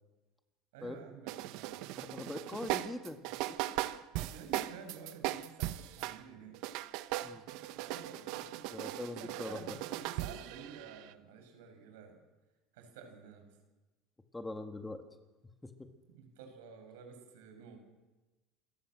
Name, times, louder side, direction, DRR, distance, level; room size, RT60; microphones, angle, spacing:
voice 1, 0.7-1.9 4.3-6.6 7.2-8.6 8.9-12.2 12.7-13.5 16.1-17.8, right 6 dB, 85° right, 5 dB, 6.8 m, -51 dB
sound 1, 1.3-6.2 6.5-11.1, right 15 dB, 70° right, 1.0 m, -38 dB
voice 2, 1.9-3.2 3.5-3.6 3.9-4.3 7.2-7.4 8.7-9.7 14.3-15.0 15.6-15.9, left 2 dB, 10° left, 6 dB, 1.9 m, -42 dB
27.0 x 14.5 x 7.8 m, 1.2 s
supercardioid pair, 105°, 0 cm